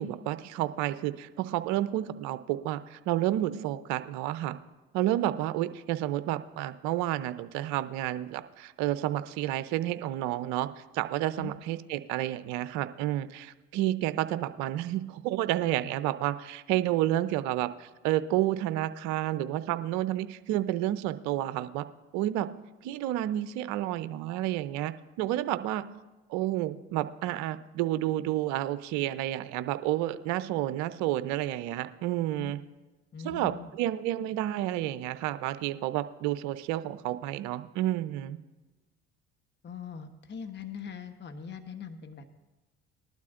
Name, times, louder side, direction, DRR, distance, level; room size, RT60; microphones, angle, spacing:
voice 1, 0.0-4.6 4.9-10.7 10.9-21.9 22.1-22.5 22.8-25.8 26.3-32.6 33.2-38.4, right 14 dB, 65° right, 13 dB, 0.7 m, -30 dB
voice 2, 33.1-33.7 39.6-42.3, left 6 dB, 35° left, 8 dB, 1.1 m, -41 dB
19.5 x 12.0 x 2.5 m, 1.1 s
hypercardioid pair, 65°, 30 cm